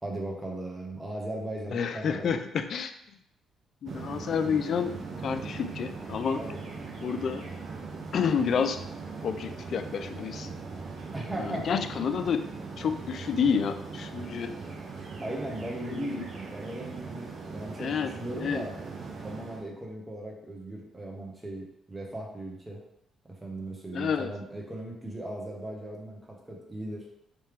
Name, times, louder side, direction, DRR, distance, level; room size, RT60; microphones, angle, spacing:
voice 1, 0.0-2.4 6.4-6.6 11.1-11.7 15.2-18.8 19.2-22.8 23.2-27.1, right 1 dB, 20° right, -2 dB, 1.2 m, -38 dB
voice 2, 1.7-2.9 3.8-6.4 7.0-7.5 8.1-8.8 9.2-10.5 11.4-12.5 12.8-14.6 15.9-16.3 17.8-18.1 18.4-18.6 23.9-24.3, left 6 dB, 60° left, 9 dB, 0.3 m, -29 dB
sound 1, 3.9-19.6, right 4 dB, 55° right, 0.8 m, -40 dB
3.4 x 3.2 x 3.3 m, 0.78 s
supercardioid pair, 60°, 0 cm